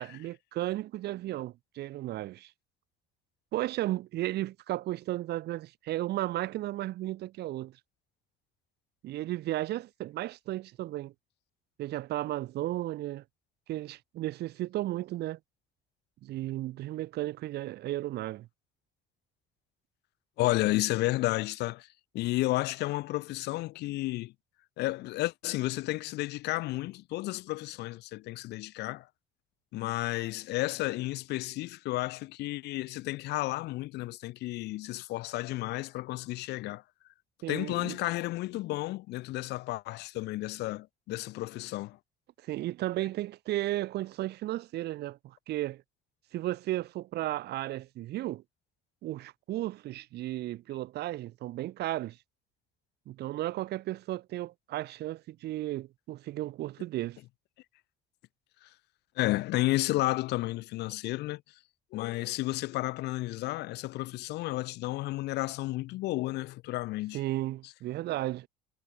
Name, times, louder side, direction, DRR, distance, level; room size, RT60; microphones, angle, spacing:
voice 1, 0.0-2.5 3.5-7.7 9.0-11.1 11.8-13.2 13.7-15.4 16.2-18.5 37.4-38.0 42.4-45.8 46.3-48.4 49.0-52.2 53.1-57.2 67.1-68.5, right 15 dB, 75° right, 4.3 m, -34 dB
voice 2, 20.4-21.9 22.1-24.3 24.8-29.1 29.7-36.8 37.5-42.0 59.2-61.4 61.9-67.2, left 18 dB, 85° left, 2.8 m, -32 dB
cardioid pair, 110°, 17 cm